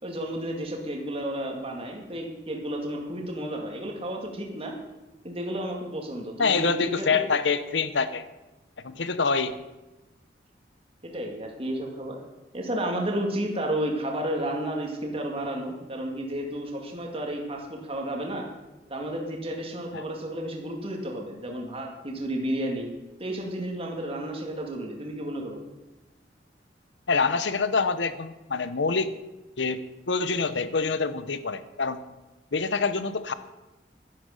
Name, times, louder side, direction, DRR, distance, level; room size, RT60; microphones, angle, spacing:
voice 1, 0.0-4.8 5.2-7.2 11.0-12.2 12.5-18.5 18.9-22.9 23.2-25.6, right 1 dB, 35° right, 1 dB, 2.2 m, -32 dB
voice 2, 6.4-8.3 8.8-9.5 19.9-20.0 27.1-29.1 29.6-32.0 32.5-33.3, left 4 dB, 85° left, 13 dB, 0.9 m, -26 dB
11.5 x 10.5 x 6.5 m, 1.1 s
head